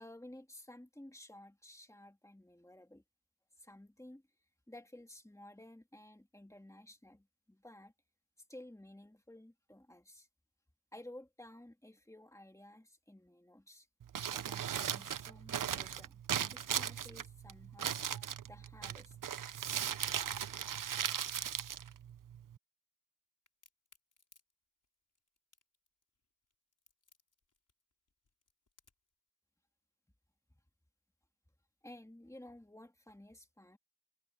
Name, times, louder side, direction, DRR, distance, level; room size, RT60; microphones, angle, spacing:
voice 1, 0.0-3.0 3.6-4.2 4.7-7.9 8.5-10.3 10.9-13.9 14.3-17.9 18.4-19.2 31.8-33.8, left 1 dB, 10° left, 2.1 m, -54 dB
Crumpling crinkling, 14.0-22.6, right 9 dB, 65° right, 0.6 m, -38 dB
Crack, 23.5-29.1, left 4 dB, 60° left, 4.9 m, -69 dB
wide cardioid pair, 105°, 35 cm